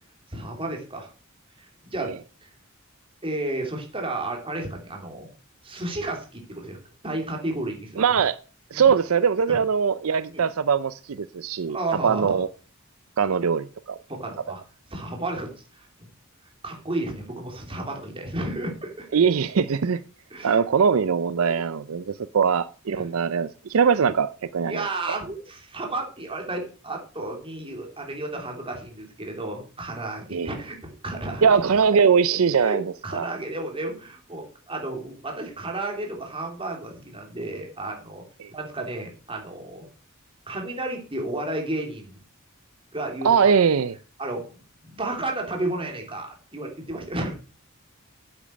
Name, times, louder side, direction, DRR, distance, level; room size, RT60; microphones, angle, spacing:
voice 1, 0.3-1.1 1.6-2.1 3.2-5.3 5.6-6.8 7.0-8.0 8.7-8.8 9.5-9.6 10.3-10.4 11.7-12.4 14.1-14.6 14.9-16.1 16.6-19.1 20.3-20.6 21.5-21.6 22.9-23.1 24.7-31.6 32.2-32.3 32.6-38.2 38.5-39.9 40.5-42.2 42.9-43.5 44.2-44.6 44.8-47.3, right 2 dB, 25° right, 3.2 m, -32 dB
voice 2, 8.0-8.4 8.7-11.8 12.0-12.5 13.2-14.0 19.1-20.0 20.4-24.9 30.3-30.5 31.4-32.8 33.1-33.3 38.4-38.5 43.2-44.0, right 6 dB, 75° right, 0.5 m, -21 dB
9.2 x 8.1 x 6.4 m
head